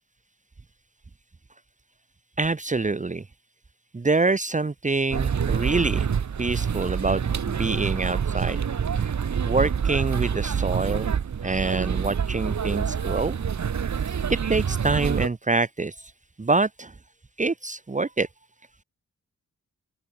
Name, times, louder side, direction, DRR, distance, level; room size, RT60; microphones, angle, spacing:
voice 1, 2.4-3.2 3.9-6.1 6.4-8.6 9.5-11.2 11.4-13.4 14.3-16.1 16.4-16.9 17.4-18.3, right 3 dB, 25° right, 1.4 m, -26 dB
sound 1, 5.1-15.3, right 7 dB, 65° right, 2.2 m, -26 dB
open air
wide cardioid pair, 180°, 31 cm